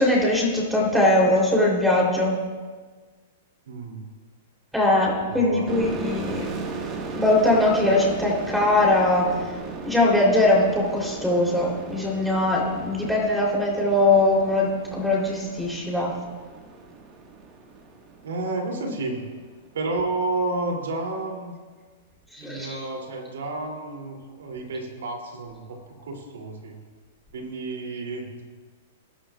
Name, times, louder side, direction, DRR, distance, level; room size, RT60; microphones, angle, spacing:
voice 1, 0.0-2.4 4.7-6.5 7.1-9.3 9.8-16.1 22.3-22.8, left 2 dB, 5° right, -2 dB, 3.6 m, -21 dB
voice 2, 3.7-4.0 5.3-5.8 18.2-19.2 19.7-21.5 22.4-26.8 27.3-28.4, right 2 dB, 80° right, 1 dB, 3.1 m, -31 dB
sound 1, 5.7-19.1, right 3 dB, 30° right, 1.8 m, -37 dB
19.0 x 11.5 x 2.5 m, 1.4 s
hypercardioid pair, 135°, 0 cm